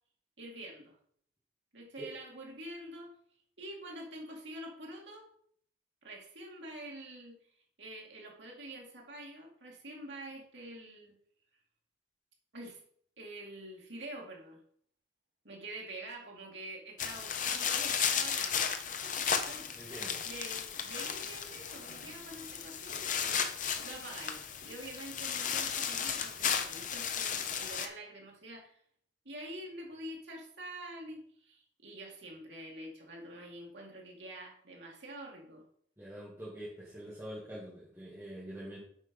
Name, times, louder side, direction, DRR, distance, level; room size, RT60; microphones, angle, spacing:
voice 1, 0.4-1.0 1.7-3.1 3.6-5.3 6.0-7.4 7.8-11.2 12.5-12.8 13.2-14.6 15.4-18.8 19.0-28.8 29.2-35.6, right 1 dB, 80° right, -1 dB, 2.5 m, -46 dB
sound 1, 17.0-27.9, left 7 dB, 45° left, 0.8 m, -34 dB
voice 2, 19.8-20.2 36.0-38.8, right 1 dB, 15° right, -9 dB, 2.2 m, -45 dB
8.1 x 5.2 x 5.4 m, 0.63 s
head